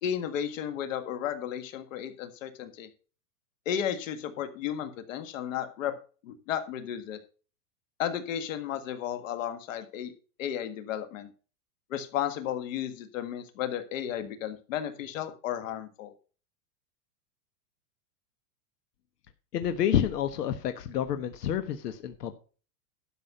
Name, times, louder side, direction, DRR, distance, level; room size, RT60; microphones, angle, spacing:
voice 1, 0.0-2.9 3.7-6.0 6.2-7.2 8.0-10.1 10.4-11.3 11.9-16.1, left 9 dB, 55° left, 1.8 m, -33 dB
voice 2, 19.5-22.3, left 10 dB, 80° left, 1.4 m, -29 dB
12.0 x 6.3 x 5.4 m
supercardioid pair, 180°, 47 cm